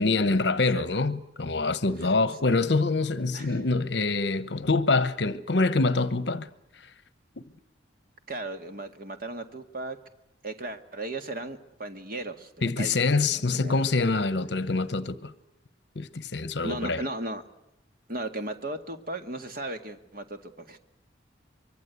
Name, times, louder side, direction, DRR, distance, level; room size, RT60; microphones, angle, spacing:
voice 1, 0.0-6.5 12.6-15.3 16.0-17.0, left 3 dB, 60° left, 1.0 m, -25 dB
voice 2, 8.3-10.0 10.4-13.0 13.3-13.8 16.6-17.4 18.1-20.8, right 2 dB, 50° right, 1.9 m, -36 dB
25.0 x 23.0 x 8.3 m
head